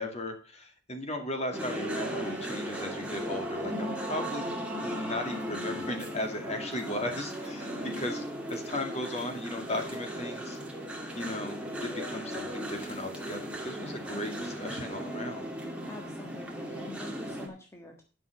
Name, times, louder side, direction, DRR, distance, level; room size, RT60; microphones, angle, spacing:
voice 1, 0.0-4.5 4.8-10.6 11.1-15.4, left 1 dB, 35° left, 4 dB, 2.3 m, -36 dB
sound 1, 1.5-17.5, equal, 5° right, 2.2 m, -37 dB
voice 2, 15.8-18.0, left 2 dB, 15° left, 1 dB, 1.5 m, -45 dB
11.0 x 6.1 x 6.6 m, 0.35 s
head